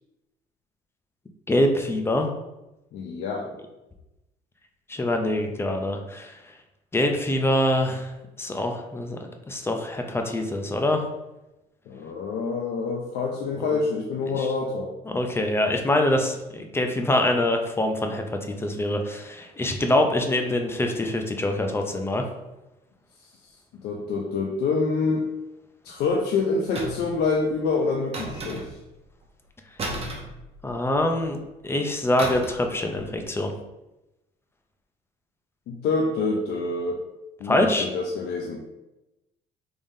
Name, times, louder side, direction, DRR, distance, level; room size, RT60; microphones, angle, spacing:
voice 1, 1.5-2.3 4.9-6.3 6.9-8.1 8.4-9.2 9.5-11.0 14.3-14.5 15.1-22.2 30.6-31.4 31.6-33.5 37.4-37.9, left 1 dB, 15° left, 4 dB, 0.5 m, -24 dB
voice 2, 2.9-3.5 11.9-14.9 23.8-25.2 25.8-28.8 35.7-37.0 37.4-38.7, left 4 dB, 70° left, 0 dB, 0.5 m, -26 dB
sound 1, 26.7-27.2 28.1-28.9 29.8-31.0 32.2-32.7 32.9-33.2, right 1 dB, 35° right, 0.8 m, -34 dB
3.6 x 3.3 x 2.7 m, 0.97 s
cardioid pair, 110°, 17 cm